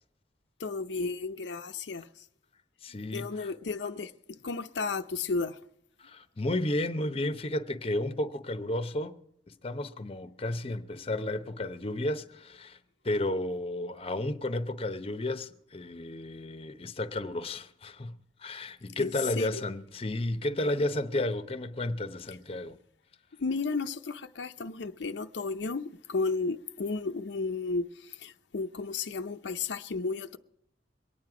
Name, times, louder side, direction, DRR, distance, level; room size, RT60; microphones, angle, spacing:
voice 1, 0.6-2.1 3.1-4.1 4.4-5.6 19.0-19.6 22.3-22.4 23.4-30.4, left 4 dB, 85° left, 0.6 m, -33 dB
voice 2, 2.8-3.5 6.0-9.2 9.6-12.8 13.0-18.1 18.4-22.8, left 1 dB, 35° left, 0.7 m, -32 dB
23.0 x 9.3 x 4.9 m
head